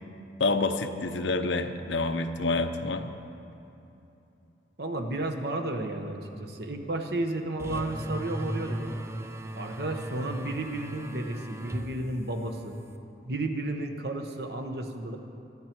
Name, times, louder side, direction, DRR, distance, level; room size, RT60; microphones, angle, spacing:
voice 1, 0.4-3.1, left 3 dB, 80° left, 7 dB, 0.8 m, -28 dB
voice 2, 4.8-8.9 9.5-12.8 13.2-15.2, right 2 dB, 55° right, 5 dB, 1.1 m, -32 dB
sound 1, 7.6-13.0, right 1 dB, 15° right, 0.5 m, -38 dB
24.0 x 9.2 x 4.5 m, 2.9 s
head